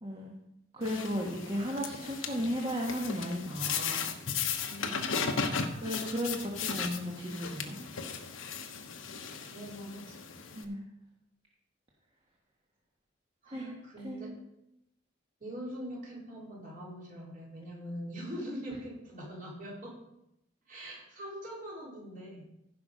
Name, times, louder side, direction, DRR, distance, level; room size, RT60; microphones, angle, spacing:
voice 1, 0.0-0.3 0.7-4.1 5.8-7.9 10.5-10.8 13.5-13.7 14.0-14.4, equal, 25° right, -2 dB, 1.4 m, -35 dB
sound 1, 0.8-10.6, left 6 dB, 90° left, 1.1 m, -36 dB
voice 2, 4.6-5.7 9.4-10.2 13.4-14.3 15.4-20.0 20.7-22.4, equal, 45° right, -4 dB, 4.2 m, -43 dB
15.5 x 5.7 x 5.1 m, 0.83 s
head